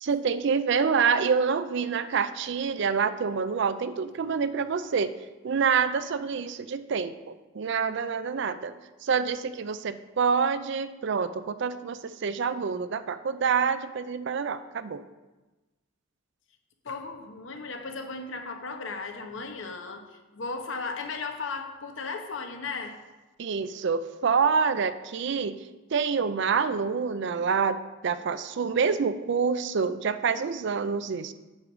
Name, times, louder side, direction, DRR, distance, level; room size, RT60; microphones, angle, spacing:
voice 1, 0.0-5.1 5.4-8.7 9.0-15.0 23.4-25.6 25.9-31.3, right 5 dB, 60° right, 13 dB, 0.4 m, -27 dB
voice 2, 16.8-22.9, left 4 dB, 70° left, 5 dB, 0.9 m, -36 dB
8.5 x 4.7 x 6.1 m, 1.1 s
head